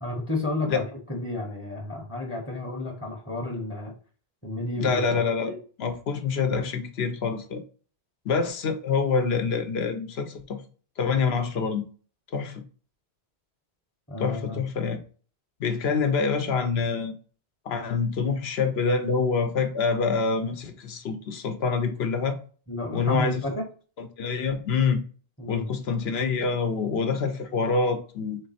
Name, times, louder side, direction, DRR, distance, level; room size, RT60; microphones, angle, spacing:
voice 1, 0.0-3.9 4.4-5.6 14.1-14.6 22.7-23.7 25.4-25.7, left 2 dB, 15° left, 0.8 m, -31 dB
voice 2, 4.8-5.5 5.8-7.6 8.2-10.6 11.0-11.8 12.3-12.6 14.2-15.0 15.6-17.1 17.7-22.4 22.9-23.4 24.0-25.0 25.5-28.4, left 5 dB, 70° left, 1.0 m, -26 dB
3.8 x 3.2 x 4.1 m
omnidirectional pair, 1.1 m